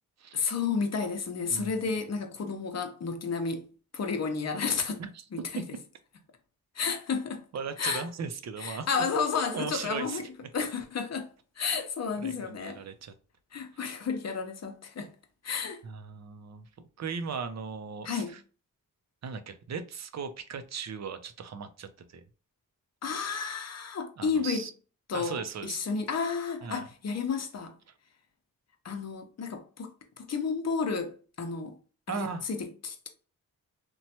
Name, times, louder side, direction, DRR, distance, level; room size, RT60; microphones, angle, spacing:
voice 1, 0.3-3.7 3.9-5.0 5.3-5.4 6.8-7.4 7.8-8.0 8.6-10.2 10.5-11.3 11.6-12.8 13.5-15.1 15.4-15.8 18.0-18.3 23.0-24.6 25.1-27.7 28.8-29.9 30.2-31.7 32.1-32.6 32.8-33.1, left 5 dB, 50° left, 0.7 m, -31 dB
voice 2, 7.5-9.0 9.5-10.2 12.2-13.1 15.8-18.4 19.2-22.2 24.2-24.7 25.1-25.8 26.6-26.9 32.1-32.4, right 5 dB, 50° right, 0.5 m, -38 dB
3.0 x 2.2 x 2.8 m
cardioid pair, 70°, 34 cm